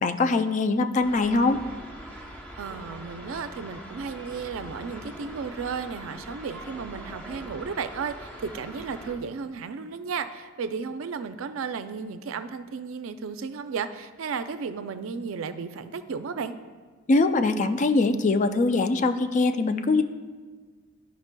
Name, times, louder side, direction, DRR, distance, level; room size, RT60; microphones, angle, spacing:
voice 1, 0.0-1.6 17.1-20.0, left 3 dB, 35° left, 9 dB, 0.3 m, -22 dB
sound 1, 1.0-9.2, right 1 dB, 10° left, 0.7 m, -42 dB
voice 2, 2.6-16.6, right 5 dB, 85° right, 10 dB, 0.4 m, -34 dB
11.5 x 5.2 x 2.2 m, 1.5 s
head